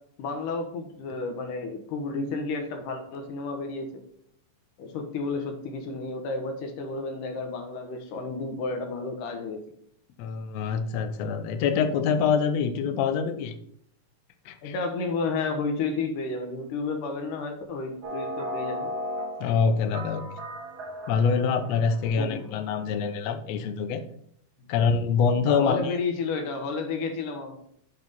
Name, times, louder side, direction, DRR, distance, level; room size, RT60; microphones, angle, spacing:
voice 1, 0.2-4.0 4.8-9.6 14.6-18.9 22.0-22.5 25.5-27.6, left 3 dB, 70° left, 5 dB, 2.6 m, -31 dB
voice 2, 10.2-13.5 14.5-14.7 19.4-20.2 21.1-24.0 24.7-25.9, left 6 dB, 90° left, 8 dB, 1.4 m, -25 dB
sound 1, 18.0-22.5, equal, 55° right, 1.1 m, -36 dB
7.7 x 4.6 x 5.3 m, 0.67 s
omnidirectional pair, 3.9 m